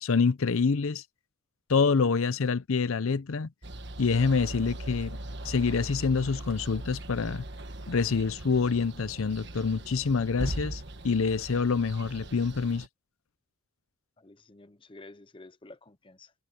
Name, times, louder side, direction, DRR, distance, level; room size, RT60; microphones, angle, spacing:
voice 1, 0.0-1.0 1.7-3.5 4.0-5.2 5.4-7.4 7.9-12.9, left 5 dB, 70° left, 0.6 m, -26 dB
sound 1, 3.6-12.9, right 1 dB, 50° right, 1.5 m, -40 dB
voice 2, 14.2-16.3, left 2 dB, 25° left, 0.7 m, -51 dB
head